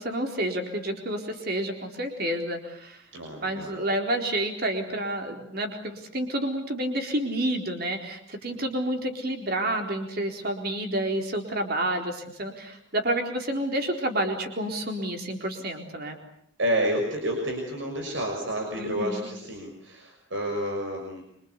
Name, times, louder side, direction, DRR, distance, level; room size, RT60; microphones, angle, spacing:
voice 1, 0.0-3.0 3.4-16.2 18.8-19.3, right 1 dB, 50° right, 4 dB, 4.1 m, -29 dB
voice 2, 3.1-3.8 16.6-21.2, right 1 dB, 75° right, 2 dB, 6.1 m, -29 dB
26.0 x 25.5 x 8.3 m, 0.68 s
head